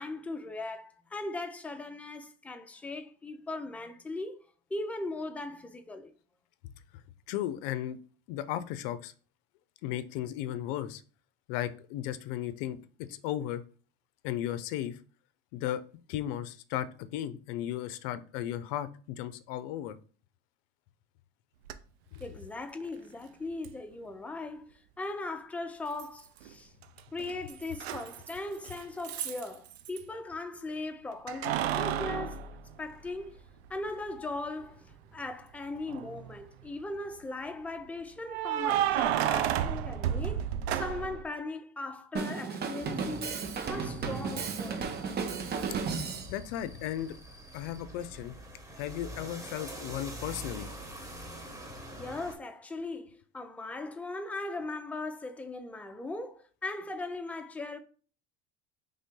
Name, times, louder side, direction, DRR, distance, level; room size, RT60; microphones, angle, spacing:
voice 1, 0.0-4.4 4.7-6.1 22.2-26.7 27.1-32.5 32.8-33.4 33.7-40.4 40.7-43.4 43.7-44.8 52.0-57.8, left 2 dB, 5° left, 0.5 m, -39 dB
voice 2, 7.3-8.0 8.3-9.1 9.8-11.0 11.5-12.8 13.1-13.6 14.2-15.0 15.5-15.8 16.1-20.0 22.1-22.2 45.9-46.0 46.3-47.2 47.5-48.3 48.8-50.7, left 12 dB, 65° left, 0.5 m, -35 dB
Keys jangling, 21.7-21.8 23.6-23.7 26.0-26.5 26.8-30.0 31.3-33.4 33.9-34.0 35.8-36.3 38.3-41.2, right 10 dB, 85° right, 0.5 m, -31 dB
Drum kit, 42.2-46.3, right 5 dB, 30° right, 0.7 m, -34 dB
sound 1, 42.8-52.4, right 1 dB, 10° right, 1.2 m, -46 dB
3.4 x 2.6 x 3.6 m
hypercardioid pair, 85°, 31 cm